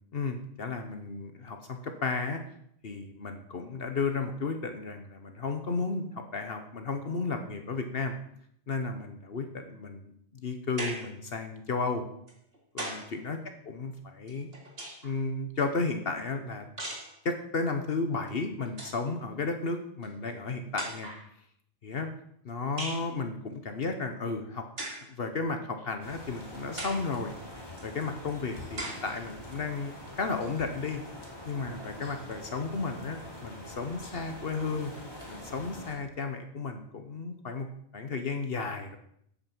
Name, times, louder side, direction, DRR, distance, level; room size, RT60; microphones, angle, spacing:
voice 1, 0.1-2.4 2.8-8.1 8.7-12.0 12.7-13.4 13.7-14.5 15.0-16.7 17.2-21.1 21.8-22.1 22.4-24.6 25.1-27.3 27.8-31.0 31.5-34.9 35.3-37.7 37.9-39.0, left 4 dB, 65° left, 6 dB, 1.3 m, -33 dB
sound 1, 10.8-11.2 12.3-13.2 14.3-15.2 16.8-17.2 18.3-18.4 18.7-19.0 20.0-20.1 20.8-21.3 22.8-23.1 24.8-25.1 25.8-25.9 26.8-27.1 27.8-27.9 28.8-29.1, right 1 dB, 70° right, 2.7 m, -38 dB
sound 2, 26.0-36.0, left 1 dB, 20° left, 3.3 m, -45 dB
8.6 x 8.6 x 7.3 m, 0.70 s
omnidirectional pair, 1.1 m